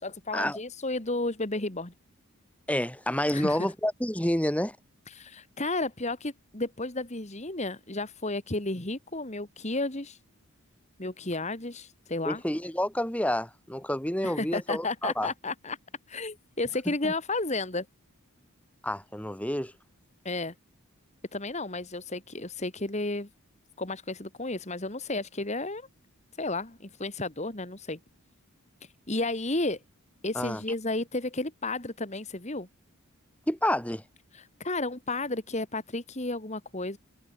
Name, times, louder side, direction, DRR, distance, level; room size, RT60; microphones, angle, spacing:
voice 1, 0.0-1.9 3.3-3.7 5.1-10.2 11.0-12.4 14.2-15.8 16.1-17.9 20.2-20.5 21.3-23.3 23.8-25.9 26.4-28.0 29.1-29.8 30.2-32.7 34.3-37.0, left 2 dB, 30° left, 2.1 m, -32 dB
voice 2, 2.7-4.8 12.2-15.3 16.9-17.1 18.8-19.7 30.3-30.6 33.5-34.0, left 1 dB, 5° left, 2.8 m, -29 dB
head